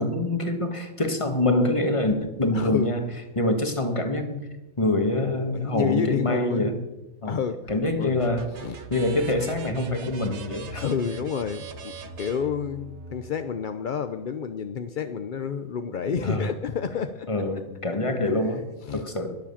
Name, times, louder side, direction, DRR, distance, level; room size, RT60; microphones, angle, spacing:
voice 1, 0.0-3.0 3.3-4.4 4.8-6.8 7.2-7.4 7.7-8.5 8.9-10.8 16.2-16.5 17.3-18.6 18.9-19.4, left 1 dB, 20° left, 6 dB, 1.6 m, -25 dB
voice 2, 2.5-2.9 5.5-6.7 7.2-8.1 8.5-8.8 10.8-17.3 18.2-19.1, left 7 dB, 50° left, 9 dB, 0.6 m, -30 dB
sound 1, 7.7-13.3, right 5 dB, 55° right, 1.4 m, -41 dB
21.5 x 7.5 x 7.2 m, 1.0 s
omnidirectional pair, 1.5 m